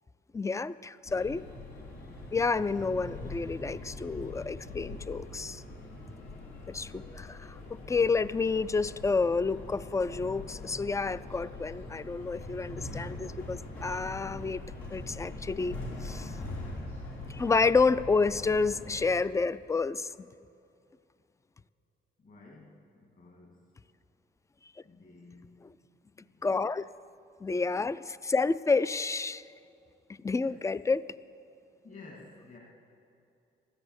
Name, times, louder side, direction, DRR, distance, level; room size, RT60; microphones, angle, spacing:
voice 1, 0.3-1.4 2.3-5.6 6.7-7.6 7.9-14.6 14.9-16.3 17.3-20.1 26.4-26.8 27.4-29.4 30.2-31.0, left 4 dB, 15° left, 17 dB, 0.3 m, -29 dB
sound 1, 1.1-19.1, left 2 dB, 90° left, 3.5 m, -42 dB
voice 2, 22.2-23.7 24.8-25.7 26.1-26.6 30.2-30.7 31.8-32.6, left 3 dB, 45° left, -2 dB, 2.3 m, -53 dB
14.0 x 10.5 x 8.0 m, 2.7 s
cardioid pair, 90°, 20 cm